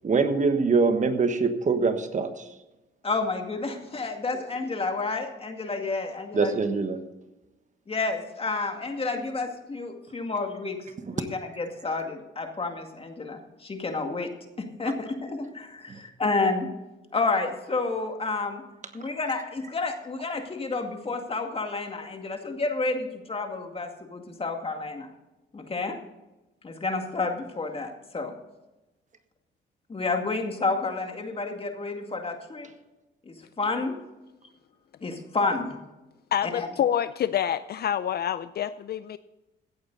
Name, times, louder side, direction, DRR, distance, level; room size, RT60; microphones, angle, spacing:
voice 1, 0.0-2.5 6.3-7.0 15.9-16.0, right 4 dB, 40° right, 1.3 m, -24 dB
voice 2, 3.0-6.5 7.9-10.8 11.1-14.3 14.6-16.7 17.1-18.6 18.9-25.1 25.5-26.0 26.6-28.3 29.9-32.7 33.2-33.9 35.0-35.8 36.4-36.7, left 3 dB, 30° left, 2.2 m, -30 dB
voice 3, 36.3-39.2, left 10 dB, 55° left, 0.5 m, -27 dB
16.0 x 8.9 x 4.0 m
cardioid pair, 90°, 20 cm